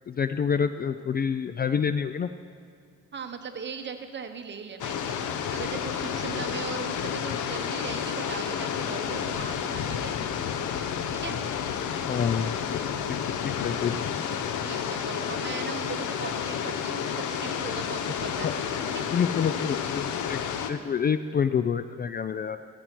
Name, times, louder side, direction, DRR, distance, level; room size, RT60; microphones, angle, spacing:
voice 1, 0.1-2.3 12.1-12.8 13.4-14.3 18.4-18.5 19.1-22.6, left 7 dB, 35° left, 11 dB, 0.4 m, -28 dB
voice 2, 3.1-5.2 5.5-10.3 11.2-11.4 14.5-19.1, right 5 dB, 35° right, 7 dB, 1.0 m, -39 dB
sound 1, 4.8-20.7, left 8 dB, 75° left, 0.8 m, -30 dB
14.0 x 7.8 x 4.5 m, 2.3 s
cardioid pair, 90°, 30 cm